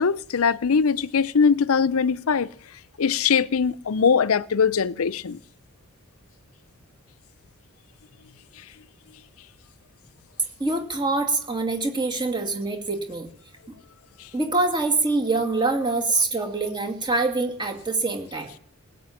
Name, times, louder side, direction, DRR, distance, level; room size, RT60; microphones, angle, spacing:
voice 1, 0.0-2.5 3.0-5.4, left 6 dB, 75° left, 0.6 m, -21 dB
voice 2, 10.6-13.3 14.3-18.6, right 3 dB, 20° right, 2.3 m, -25 dB
19.5 x 8.4 x 7.2 m
head